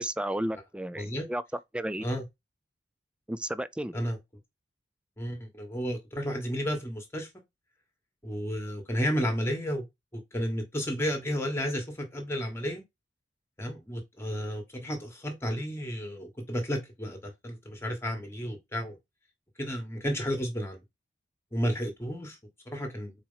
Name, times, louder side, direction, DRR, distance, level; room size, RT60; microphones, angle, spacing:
voice 1, 0.0-1.4 1.7-2.1 3.3-4.0, right 1 dB, 5° right, 0.3 m, -33 dB
voice 2, 0.9-1.3 2.0-2.2 3.9-4.2 5.2-7.3 8.2-9.8 10.1-12.8 13.6-19.0 19.6-20.8 21.5-22.4 22.7-23.1, equal, 15° left, 1.4 m, -32 dB
4.6 x 4.4 x 5.5 m
head